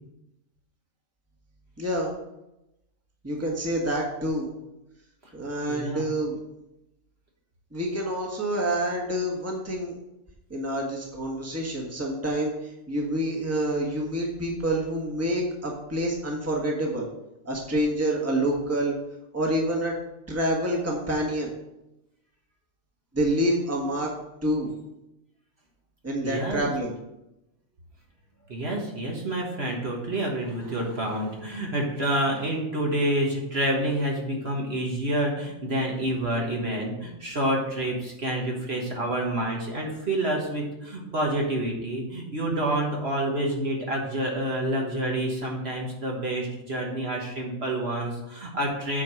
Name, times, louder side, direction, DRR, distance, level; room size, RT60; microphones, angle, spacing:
voice 1, 1.8-2.1 3.2-4.5 5.3-6.4 7.7-10.0 10.5-17.1 17.4-19.0 19.3-19.9 20.3-21.5 23.1-24.1 24.4-24.7 26.0-26.9, right 1 dB, 10° right, -1 dB, 1.4 m, -27 dB
voice 2, 5.7-6.1 26.2-26.7 28.5-49.0, right 1 dB, 50° right, -1 dB, 1.6 m, -28 dB
8.4 x 4.7 x 6.0 m, 0.90 s
omnidirectional pair, 1.5 m